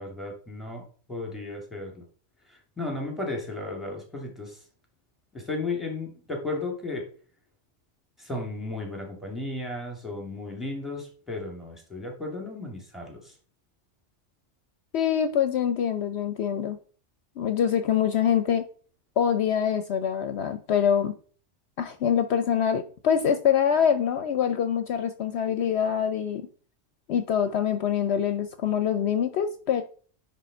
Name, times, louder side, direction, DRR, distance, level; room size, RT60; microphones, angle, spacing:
voice 1, 0.0-2.0 2.5-4.6 5.3-7.1 8.2-13.3, left 2 dB, ahead, 0 dB, 2.6 m, -34 dB
voice 2, 14.9-16.8 17.4-18.6 19.2-21.1 21.8-26.4 27.1-29.8, left 8 dB, 65° left, 9 dB, 0.9 m, -25 dB
9.9 x 3.5 x 5.2 m, 0.42 s
omnidirectional pair, 1.2 m